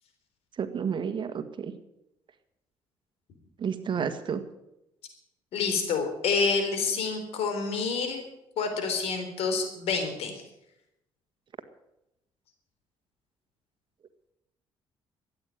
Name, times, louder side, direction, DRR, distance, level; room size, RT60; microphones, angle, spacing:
voice 1, 0.6-1.7 3.6-4.4, right 7 dB, 50° right, 10 dB, 1.7 m, -31 dB
voice 2, 5.5-8.2 8.6-10.3, left 5 dB, 75° left, 6 dB, 3.7 m, -28 dB
14.0 x 9.3 x 9.3 m, 0.87 s
supercardioid pair, 75°, 10 cm